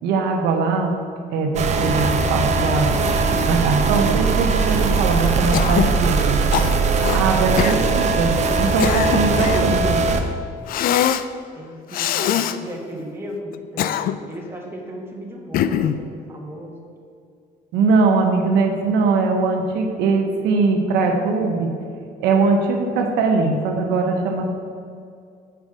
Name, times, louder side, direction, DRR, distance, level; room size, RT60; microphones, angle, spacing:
voice 1, 0.0-0.9 1.3-3.0 3.5-6.4 7.1-10.0 17.7-21.7 22.2-24.6, right 4 dB, 85° right, 2 dB, 0.9 m, -21 dB
sound 1, 1.6-10.2, right 4 dB, 45° right, 0.7 m, -20 dB
Cough, 5.5-6.0 6.5-7.2 7.6-7.8 8.5-9.7 10.7-11.3 11.9-12.6 13.5-14.4 15.5-16.0, left 10 dB, 60° left, 0.4 m, -22 dB
voice 2, 11.6-16.8, equal, 15° right, -2 dB, 1.6 m, -35 dB
8.1 x 5.3 x 4.9 m, 2.3 s
cardioid pair, 110°, 17 cm